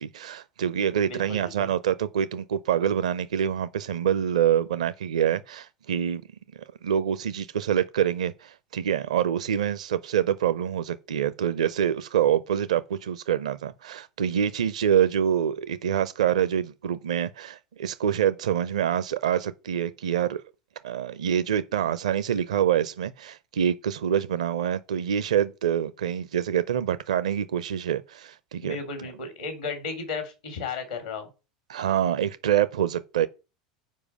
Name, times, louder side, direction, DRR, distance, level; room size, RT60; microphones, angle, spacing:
voice 1, 0.0-6.2 6.5-20.4 20.8-28.8 31.7-33.3, right 9 dB, 70° right, 0.5 m, -26 dB
voice 2, 1.0-1.7 28.6-31.3, left 4 dB, 75° left, 3.0 m, -34 dB
7.2 x 4.9 x 6.3 m
figure-of-eight pair, 80°, 4 cm